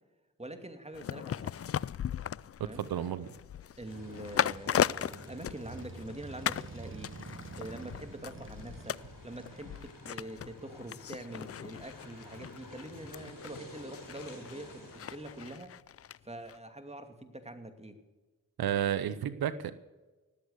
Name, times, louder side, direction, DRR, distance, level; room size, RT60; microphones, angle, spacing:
voice 1, 0.4-1.5 2.6-2.8 3.8-7.1 7.5-15.7 16.2-18.0, right 1 dB, 15° right, 6 dB, 2.6 m, -45 dB
sound 1, 0.9-6.1 6.4-6.7 7.0-16.2 16.5-16.6, left 9 dB, 40° left, 0.4 m, -37 dB
voice 2, 2.7-3.3 18.6-19.7, right 9 dB, 85° right, 14 dB, 0.7 m, -31 dB
sound 2, 3.8-15.5, left 1 dB, 65° left, 6.6 m, -52 dB
Motorcycle, 3.9-10.5, right 3 dB, 35° right, 1.4 m, -49 dB
19.0 x 8.2 x 8.1 m, 1.2 s
cardioid pair, 40°, 36 cm